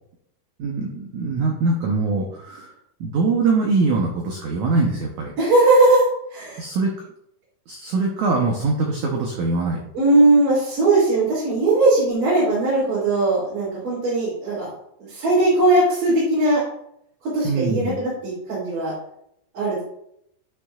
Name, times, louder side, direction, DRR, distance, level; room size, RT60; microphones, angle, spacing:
voice 1, 0.6-2.7 3.0-5.3 6.6-6.9 7.7-9.8 17.4-18.0, right 3 dB, 70° right, 0 dB, 1.8 m, -22 dB
voice 2, 5.4-6.0 6.3-6.6 9.9-14.7 15.1-16.6 17.3-18.9 19.5-19.8, right 2 dB, 55° right, -10 dB, 4.6 m, -19 dB
12.0 x 6.3 x 2.4 m, 0.75 s
omnidirectional pair, 4.6 m